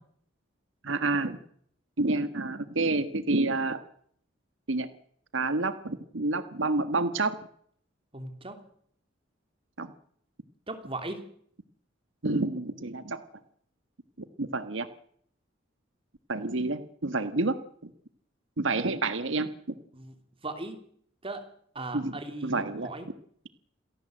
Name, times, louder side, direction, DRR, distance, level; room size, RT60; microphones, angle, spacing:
voice 1, 0.8-1.4 2.0-3.8 4.7-4.9 5.3-7.4 9.8-9.9 12.2-13.2 14.4-14.9 16.3-17.6 18.6-19.5 21.9-22.9, right 2 dB, 75° right, 11 dB, 1.5 m, -28 dB
voice 2, 8.1-8.6 10.7-11.2 18.8-18.9 19.9-20.1 20.4-20.8 21.2-21.4 21.7-23.1, right 2 dB, 30° right, 7 dB, 3.2 m, -38 dB
27.0 x 17.5 x 7.8 m, 0.65 s
head